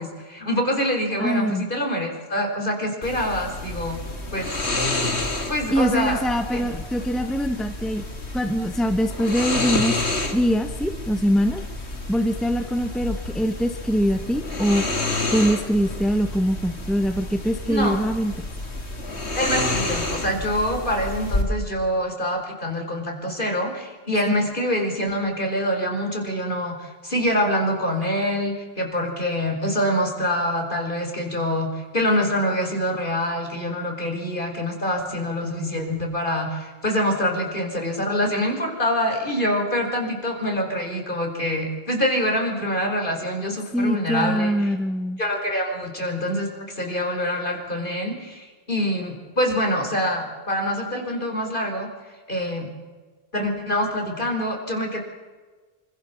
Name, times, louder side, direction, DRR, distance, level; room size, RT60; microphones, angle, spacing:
voice 1, 0.0-4.0 4.3-4.5 5.5-6.2 6.5-6.7 17.7-18.0 19.4-31.7 31.9-44.5 45.2-46.5 46.8-51.9 52.3-52.7 53.3-55.0, equal, 50° left, 2 dB, 5.3 m, -25 dB
voice 2, 1.2-1.7 5.7-8.0 8.3-10.0 10.3-11.6 12.1-14.8 15.3-18.4 43.7-45.2, equal, ahead, 7 dB, 1.3 m, -23 dB
sound 1, 3.0-21.4, left 2 dB, 85° left, 3.1 m, -29 dB
26.5 x 25.5 x 7.2 m, 1.4 s
omnidirectional pair, 1.1 m